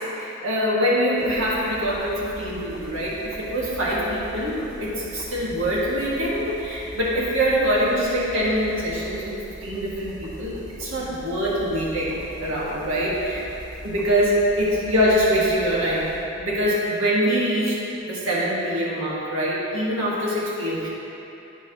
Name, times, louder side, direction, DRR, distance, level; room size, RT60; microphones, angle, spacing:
voice 1, 0.1-10.5 10.8-13.4 13.8-16.0 16.3-17.8 18.0-20.9, equal, 65° right, -6 dB, 1.5 m, -24 dB
sound 1, 1.2-16.6, equal, 45° right, 1.5 m, -41 dB
11.5 x 4.4 x 2.9 m, 2.9 s
head